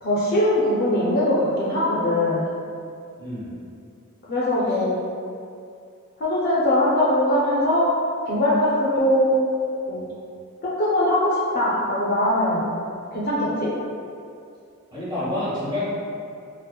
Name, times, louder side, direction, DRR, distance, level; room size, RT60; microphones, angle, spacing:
voice 1, 0.0-2.5 4.3-5.0 6.2-7.9 8.3-9.4 9.9-10.1 10.6-12.7 13.1-13.7, left 1 dB, 50° left, -8 dB, 0.4 m, -21 dB
voice 2, 3.2-3.5 14.9-15.8, left 1 dB, 20° right, -11 dB, 0.9 m, -28 dB
2.8 x 2.0 x 2.2 m, 2.4 s
head